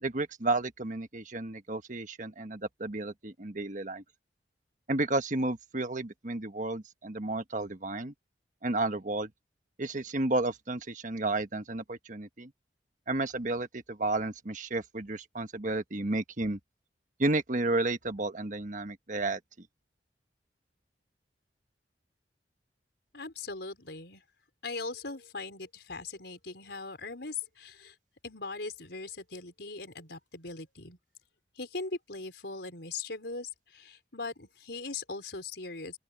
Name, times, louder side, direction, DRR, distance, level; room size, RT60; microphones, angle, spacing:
voice 1, 0.0-4.0 4.9-8.1 8.6-9.3 9.8-12.5 13.1-16.6 17.2-19.7, right 2 dB, 45° right, 1.4 m, -32 dB
voice 2, 23.1-24.2 24.6-27.9 28.2-31.0 31.6-36.0, left 3 dB, 70° left, 4.8 m, -40 dB
open air
head